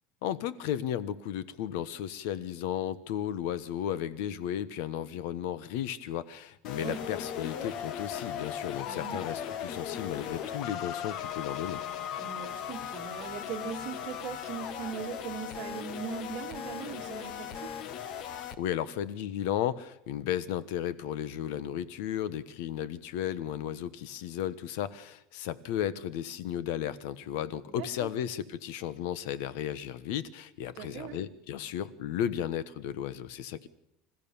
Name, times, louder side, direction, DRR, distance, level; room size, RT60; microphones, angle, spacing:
voice 1, 0.2-11.8 18.6-33.7, left 10 dB, 65° left, 17 dB, 1.2 m, -34 dB
sound 1, 6.6-18.5, left 9 dB, 40° left, 1.2 m, -38 dB
voice 2, 8.9-9.2 12.2-17.7 27.7-28.1 30.7-31.2, right 7 dB, 45° right, 4 dB, 2.4 m, -40 dB
27.0 x 15.0 x 7.1 m, 0.79 s
cardioid pair, 170°, 0 cm